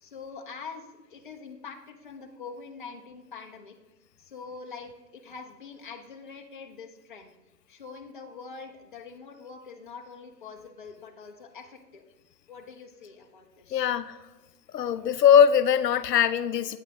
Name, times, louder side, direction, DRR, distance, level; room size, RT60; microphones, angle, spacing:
voice 1, 0.0-3.8 4.2-7.3 7.7-12.0 12.5-13.9, left 5 dB, 35° left, 3 dB, 0.5 m, -44 dB
voice 2, 13.7-14.2 14.7-16.8, left 8 dB, 75° left, 13 dB, 0.5 m, -21 dB
8.4 x 5.6 x 3.5 m, 1.1 s
hypercardioid pair, 155°, 49 cm